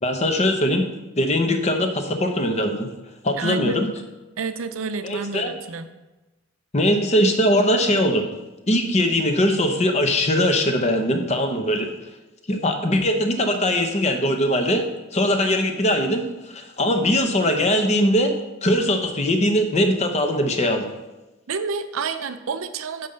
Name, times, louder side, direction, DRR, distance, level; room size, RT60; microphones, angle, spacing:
voice 1, 0.0-0.9 1.2-2.9 3.2-3.9 5.0-5.5 6.7-8.3 8.7-11.9 12.5-14.8 15.1-18.3 18.6-20.9, left 1 dB, 35° left, 5 dB, 0.9 m, -21 dB
voice 2, 3.4-3.8 4.4-5.9 21.5-23.1, right 5 dB, 85° right, 10 dB, 0.6 m, -29 dB
5.4 x 5.4 x 6.6 m, 1.1 s
head